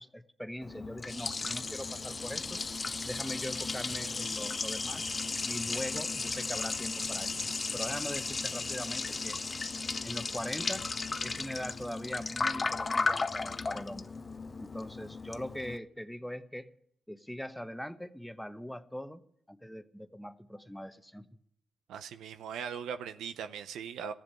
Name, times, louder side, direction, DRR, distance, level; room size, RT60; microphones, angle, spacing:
voice 1, 0.0-2.6 3.1-5.1 5.5-7.4 7.7-9.4 10.0-10.9 11.2-14.1 14.6-16.7 17.1-19.2 19.5-21.3, equal, 5° left, 1.0 m, -41 dB
Liquid, 0.6-15.8, left 3 dB, 35° left, 0.7 m, -35 dB
voice 2, 21.9-24.1, right 7 dB, 85° right, 0.6 m, -39 dB
14.5 x 7.6 x 9.9 m
supercardioid pair, 55°, 0 cm